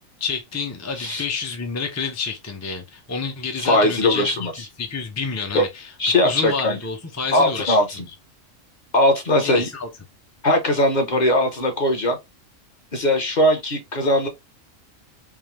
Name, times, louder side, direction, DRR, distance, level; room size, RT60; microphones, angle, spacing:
voice 1, 0.2-4.3 4.6-5.9 6.2-7.8 9.4-9.9, left 5 dB, 20° left, 0.4 m, -29 dB
voice 2, 3.6-4.5 5.5-5.6 6.0-6.8 7.3-7.8 8.9-9.7 10.4-12.2 12.9-14.3, left 1 dB, 40° left, 0.9 m, -19 dB
3.6 x 2.6 x 3.1 m
omnidirectional pair, 1.4 m